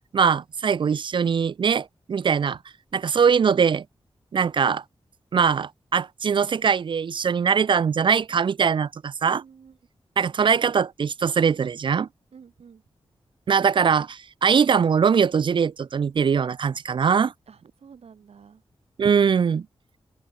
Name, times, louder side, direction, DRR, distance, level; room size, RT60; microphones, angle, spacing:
voice 1, 0.1-2.6 2.9-3.8 4.3-4.8 5.3-9.4 10.2-12.1 13.5-17.3 19.0-19.7, right 6 dB, 55° right, 0.4 m, -21 dB
voice 2, 9.2-9.8 12.3-12.8 17.5-18.6, right 6 dB, 80° right, 7.8 m, -49 dB
open air
wide cardioid pair, 130°, 10 cm